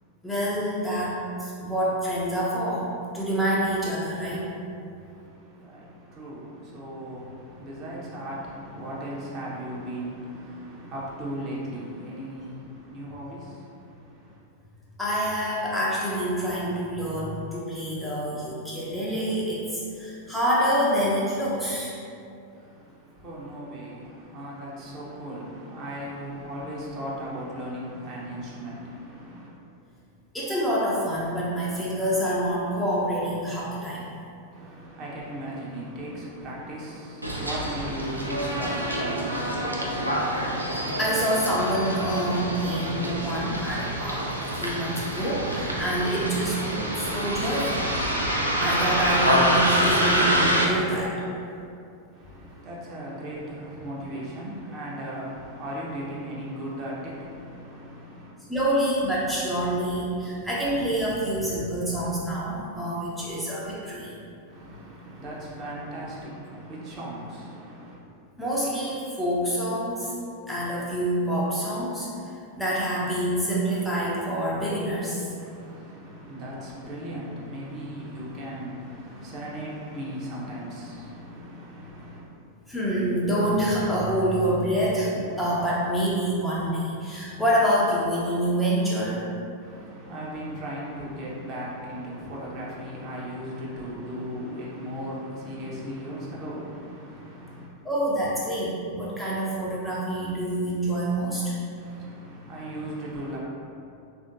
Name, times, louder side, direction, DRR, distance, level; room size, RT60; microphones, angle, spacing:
voice 1, 0.2-2.9 3.1-4.5 15.0-21.9 30.3-34.1 40.7-47.9 48.6-51.1 58.5-64.1 68.4-70.1 70.5-75.3 82.7-89.3 97.8-101.5, equal, 5° left, -7 dB, 0.5 m, -27 dB
voice 2, 4.9-14.4 22.5-29.5 34.5-40.2 52.1-58.3 64.5-68.0 75.3-82.2 89.6-97.7 101.7-103.4, equal, 35° right, -5 dB, 0.7 m, -37 dB
Bus, 37.2-50.6, right 1 dB, 85° right, 0.4 m, -26 dB
3.5 x 2.5 x 2.5 m, 2.6 s
figure-of-eight pair, 90°, 0 cm